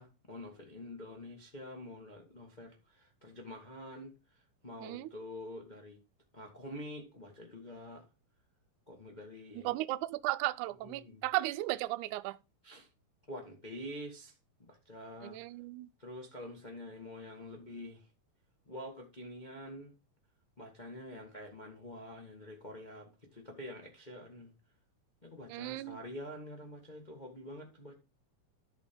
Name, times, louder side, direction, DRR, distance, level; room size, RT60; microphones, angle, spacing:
voice 1, 0.0-6.0 6.3-8.1 8.9-9.7 10.8-11.2 12.6-12.9 13.3-15.4 16.0-18.1 18.7-19.9 20.6-24.5 25.2-27.9, left 1 dB, 55° left, 0.5 m, -47 dB
voice 2, 9.7-12.4 15.2-15.9 25.5-26.0, right 18 dB, 80° right, 1.8 m, -35 dB
12.5 x 4.4 x 5.2 m
omnidirectional pair, 4.1 m